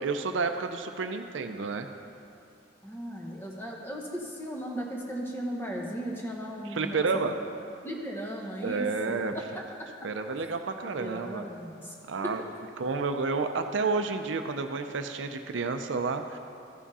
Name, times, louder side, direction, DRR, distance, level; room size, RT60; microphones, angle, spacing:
voice 1, 0.0-1.9 6.7-7.4 8.6-9.3 10.0-11.5 12.1-12.4 12.8-16.4, right 4 dB, 80° right, 7 dB, 0.5 m, -30 dB
voice 2, 2.8-7.2 7.8-9.1 11.0-11.9 12.2-12.4, equal, 10° left, -1 dB, 1.0 m, -36 dB
14.0 x 6.0 x 4.1 m, 2.7 s
head